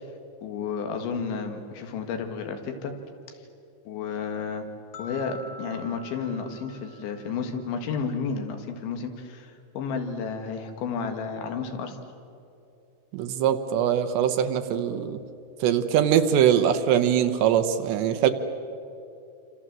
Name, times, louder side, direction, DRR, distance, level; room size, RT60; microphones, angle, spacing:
voice 1, 0.4-2.9 3.9-4.7 5.0-12.0, left 5 dB, 80° left, 5 dB, 4.2 m, -32 dB
sound 1, 4.9-8.1, left 1 dB, 55° left, 3.4 m, -46 dB
voice 2, 13.1-15.2 15.6-18.3, right 9 dB, 75° right, 9 dB, 3.1 m, -22 dB
27.5 x 26.0 x 7.5 m, 2.7 s
omnidirectional pair, 5.3 m